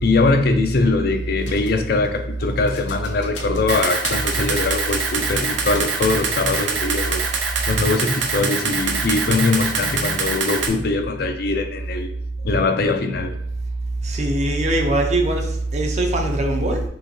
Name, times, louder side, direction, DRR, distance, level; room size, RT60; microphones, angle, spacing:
voice 1, 0.0-7.3 7.7-12.1 12.4-13.4, left 3 dB, 55° left, 7 dB, 0.5 m, -21 dB
sound 1, 1.4-6.2 6.5-7.7, left 4 dB, 80° left, 0.8 m, -38 dB
Camera, 3.7-10.7, right 5 dB, 90° right, 0.8 m, -24 dB
voice 2, 14.0-16.8, right 2 dB, 40° right, 3 dB, 0.7 m, -21 dB
5.4 x 3.1 x 3.0 m, 0.73 s
head